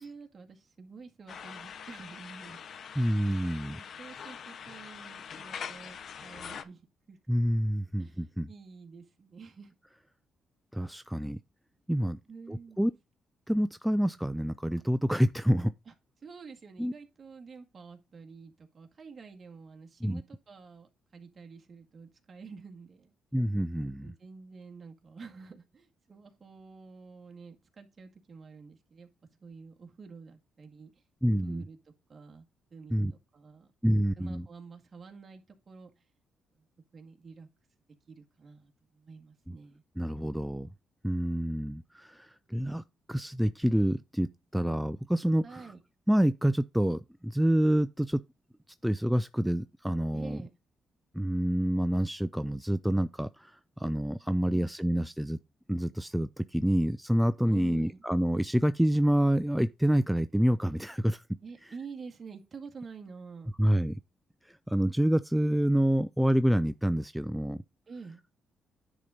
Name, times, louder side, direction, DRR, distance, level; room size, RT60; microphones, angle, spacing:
voice 1, 0.0-2.6 3.6-7.5 8.0-9.7 12.3-12.9 15.9-16.0 16.2-23.1 24.0-29.1 29.4-30.9 31.4-31.8 32.1-32.4 32.7-33.0 33.3-35.9 36.6-36.7 36.9-37.5 38.1-39.8 45.4-45.8 50.1-50.5 54.1-55.0 57.5-58.0 61.4-63.8 67.9-68.2, right 5 dB, 35° right, 2.0 m, -49 dB
sound 1, 1.3-6.6, left 7 dB, 60° left, 0.9 m, -43 dB
voice 2, 3.0-3.8 7.3-8.5 10.7-11.4 11.9-12.2 12.5-12.9 13.5-15.7 16.8-16.9 20.0-20.2 23.3-24.1 31.2-31.6 32.9-33.1 33.8-34.5 39.5-39.6 40.0-40.7 41.0-42.8 43.1-45.7 46.1-48.2 48.8-50.4 51.1-55.4 55.7-61.2 63.6-63.9 64.4-67.6, equal, 5° right, 0.4 m, -27 dB
10.0 x 4.1 x 5.1 m
cardioid pair, 90°, 0 cm